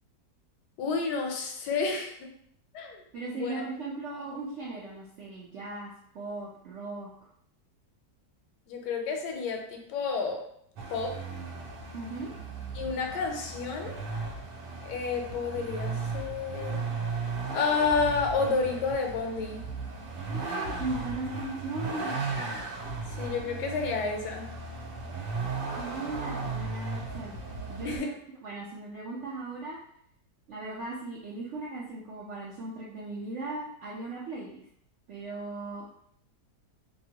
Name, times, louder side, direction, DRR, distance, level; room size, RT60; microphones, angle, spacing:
voice 1, 0.8-2.3 2.7-3.0 3.3-3.6 8.7-10.4 10.9-11.2 12.7-14.0 14.8-16.8 17.5-19.6 23.2-24.5 27.8-28.1, left 4 dB, 80° left, 2 dB, 1.2 m, -30 dB
voice 2, 3.1-7.1 11.9-12.3 20.3-22.1 25.8-27.3 27.7-28.1 28.4-29.8 30.5-34.6 35.1-35.9, right 2 dB, 70° right, -4 dB, 0.6 m, -37 dB
Vehicle, 10.8-28.0, right 4 dB, 90° right, 1.2 m, -36 dB
3.0 x 2.6 x 2.7 m, 0.68 s
omnidirectional pair, 1.8 m